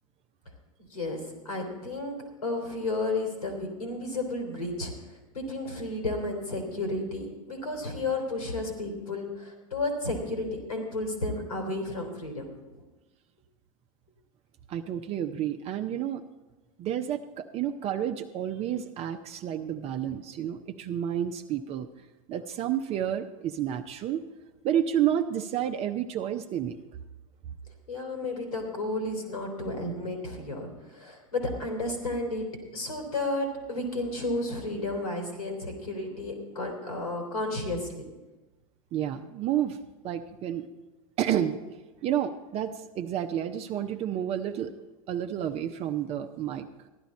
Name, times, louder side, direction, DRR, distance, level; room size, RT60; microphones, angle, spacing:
voice 1, 0.8-2.2 2.4-12.5 27.9-32.5 32.7-38.0, left 2 dB, 85° left, 2 dB, 3.1 m, -32 dB
voice 2, 14.7-16.2 16.8-21.9 22.3-24.2 24.6-26.8 38.9-39.8 40.0-40.7 41.2-41.6 42.0-44.7 45.1-46.7, right 10 dB, 35° right, 6 dB, 0.6 m, -30 dB
15.0 x 11.5 x 4.2 m, 1.1 s
figure-of-eight pair, 90°, 18 cm